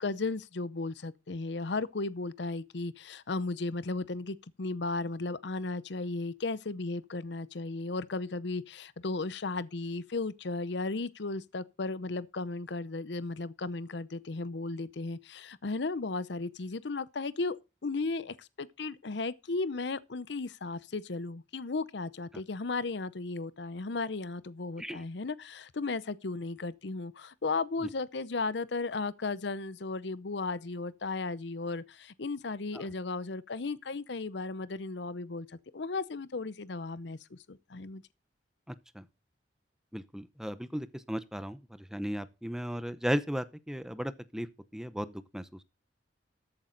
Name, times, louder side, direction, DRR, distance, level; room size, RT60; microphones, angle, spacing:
voice 1, 0.0-38.0, left 3 dB, 65° left, 0.7 m, -35 dB
voice 2, 38.7-39.0 39.9-44.5 44.7-45.6, equal, 5° right, 0.7 m, -36 dB
14.0 x 8.6 x 3.9 m
head